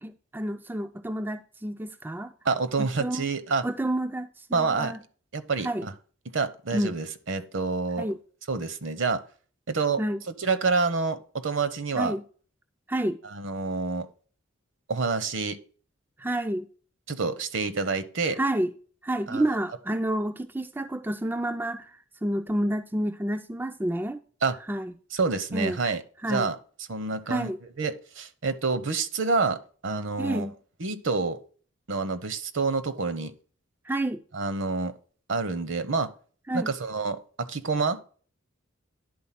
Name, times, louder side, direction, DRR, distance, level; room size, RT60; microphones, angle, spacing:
voice 1, 0.0-2.3 2.8-3.3 3.6-5.0 5.6-5.9 6.7-7.0 8.0-8.2 10.0-10.2 12.0-12.2 12.9-13.2 16.2-16.7 18.4-18.7 19.0-24.2 24.7-24.9 25.5-25.8 26.2-26.5 27.3-27.6 30.2-30.5 33.8-34.2 36.5-36.7, right 1 dB, 10° right, 0.3 m, -29 dB
voice 2, 2.4-3.6 4.5-4.9 5.3-5.9 6.3-8.1 8.5-9.2 9.7-10.0 10.4-12.1 13.3-14.1 14.9-15.6 17.1-18.4 19.3-19.4 24.4-24.6 25.1-26.0 26.3-26.6 26.9-27.5 27.8-30.5 30.8-31.4 31.9-33.3 34.3-34.9 35.3-36.1 36.5-38.0, right 4 dB, 65° right, 0.8 m, -28 dB
10.5 x 3.9 x 5.8 m
head